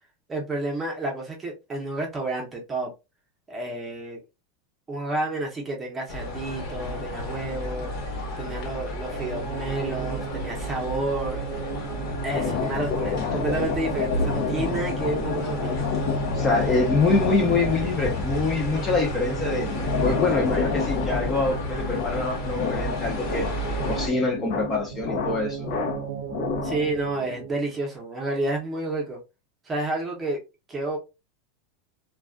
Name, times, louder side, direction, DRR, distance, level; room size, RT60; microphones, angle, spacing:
voice 1, 0.3-2.9 3.5-4.2 4.9-7.9 8.4-11.4 12.2-15.9 26.6-29.2 29.6-30.4 30.7-31.0, right 2 dB, 15° right, 0.8 m, -30 dB
sound 1, 6.1-24.1, left 1 dB, 45° left, 1.0 m, -32 dB
sound 2, 9.0-27.8, right 8 dB, 90° right, 0.4 m, -37 dB
sound 3, 12.3-27.0, left 6 dB, 60° left, 0.6 m, -30 dB
voice 2, 16.3-19.7 20.0-23.5 23.8-25.7, left 3 dB, 20° left, 0.6 m, -25 dB
2.3 x 2.3 x 2.4 m
supercardioid pair, 150°, 0 cm